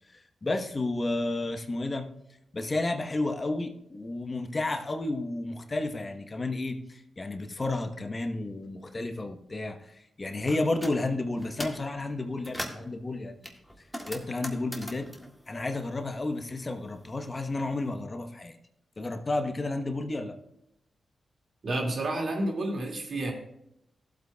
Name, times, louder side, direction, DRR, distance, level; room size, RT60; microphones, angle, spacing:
voice 1, 0.1-2.1 2.5-13.5 14.1-15.1 15.5-18.6 19.0-20.4, left 2 dB, 40° left, 6 dB, 1.0 m, -32 dB
sound 1, 10.5-11.0 11.4-11.9 12.2-12.9 13.4-16.4 16.6-17.8, equal, ahead, 1.8 m, -40 dB
voice 2, 21.6-23.3, right 1 dB, 60° right, 1 dB, 2.2 m, -30 dB
15.5 x 7.9 x 2.3 m, 0.80 s
supercardioid pair, 40°, 0 cm